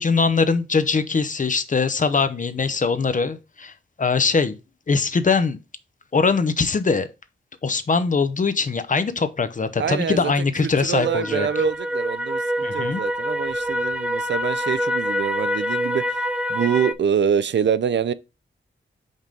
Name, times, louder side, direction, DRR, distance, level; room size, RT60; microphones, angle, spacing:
voice 1, 0.0-4.6 4.9-5.6 6.1-7.1 7.6-11.5 12.6-13.0, left 4 dB, 40° left, 0.6 m, -22 dB
voice 2, 9.8-16.2 16.5-18.1, right 7 dB, 60° right, 0.4 m, -25 dB
sound 1, 11.0-16.9, equal, 5° right, 0.5 m, -26 dB
5.3 x 3.8 x 5.2 m
wide cardioid pair, 115°, 21 cm